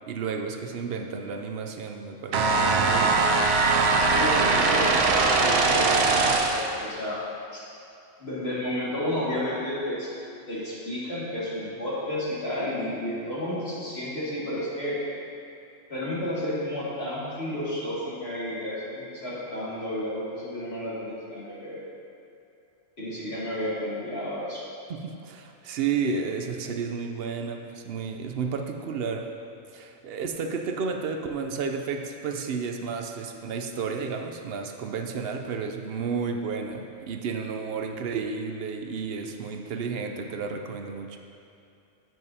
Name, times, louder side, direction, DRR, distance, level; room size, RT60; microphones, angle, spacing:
voice 1, 0.1-3.2 24.9-29.3 29.7-41.2, right 5 dB, 65° right, 4 dB, 0.7 m, -32 dB
sound 1, 2.3-6.7, right 3 dB, 90° right, 1.0 m, -21 dB
voice 2, 4.1-7.2 7.5-7.6 8.2-10.1 10.5-15.0 15.9-21.8 23.0-24.6, left 1 dB, 60° left, -9 dB, 2.4 m, -31 dB
8.9 x 7.7 x 2.7 m, 2.7 s
omnidirectional pair, 1.2 m